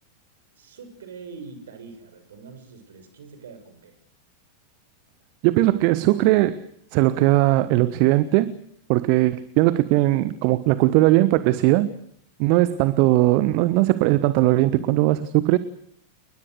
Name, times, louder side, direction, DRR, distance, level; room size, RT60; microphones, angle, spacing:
voice 1, 0.6-4.0, right 5 dB, 65° right, 6.4 m, -43 dB
voice 2, 5.4-6.7 6.9-8.5 8.9-11.9 12.4-15.6, right 17 dB, 45° right, 1.2 m, -19 dB
30.0 x 21.0 x 6.6 m
figure-of-eight pair, 90°, 0 cm